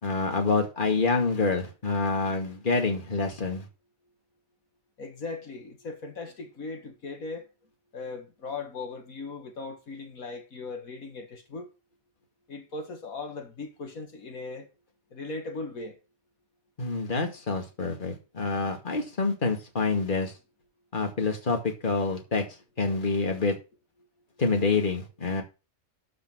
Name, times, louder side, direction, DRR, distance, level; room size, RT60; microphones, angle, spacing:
voice 1, 0.0-3.7 16.8-20.3 20.9-22.5 22.8-23.6 24.4-25.4, left 3 dB, 35° left, 2.3 m, -27 dB
voice 2, 5.0-7.5 7.9-11.7 12.5-14.7 15.1-16.0, left 3 dB, 80° left, 2.3 m, -38 dB
12.5 x 5.1 x 6.2 m
omnidirectional pair, 1.5 m